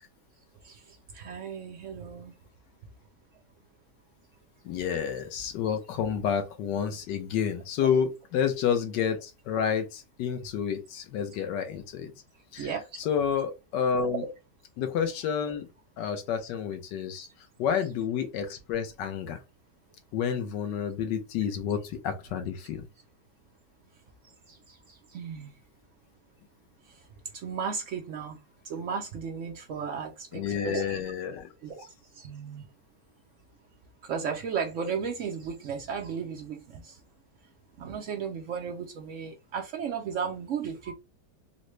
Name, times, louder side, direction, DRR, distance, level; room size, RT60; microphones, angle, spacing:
voice 1, 0.6-2.3 12.6-12.9 14.1-14.3 24.5-25.5 26.9-27.0 27.3-31.0 31.6-31.8 32.1-32.6 34.0-37.0 37.8-40.9, right 6 dB, 70° right, 0.7 m, -35 dB
voice 2, 4.6-12.1 12.5-12.7 13.0-14.2 14.8-15.7 16.0-17.3 17.6-19.4 20.1-22.8 30.3-31.5, left 7 dB, 90° left, 1.4 m, -29 dB
3.9 x 2.1 x 3.1 m
omnidirectional pair, 1.8 m